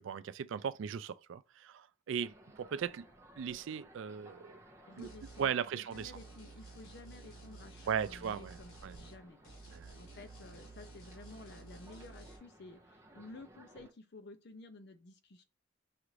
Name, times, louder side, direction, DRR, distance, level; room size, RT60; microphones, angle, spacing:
voice 1, 0.0-3.1 3.4-4.6 5.0-5.1 5.4-6.1 7.9-8.6 8.8-9.0 9.7-9.9, right 7 dB, 65° right, 0.3 m, -37 dB
sound 1, 2.2-13.9, right 1 dB, 15° right, 0.6 m, -59 dB
voice 2, 4.9-9.4 10.0-15.4, left 2 dB, 55° left, 0.6 m, -53 dB
sound 2, 5.0-5.5 5.9-9.2 9.4-12.4, right 3 dB, 90° left, 1.7 m, -53 dB
5.7 x 2.5 x 3.1 m
head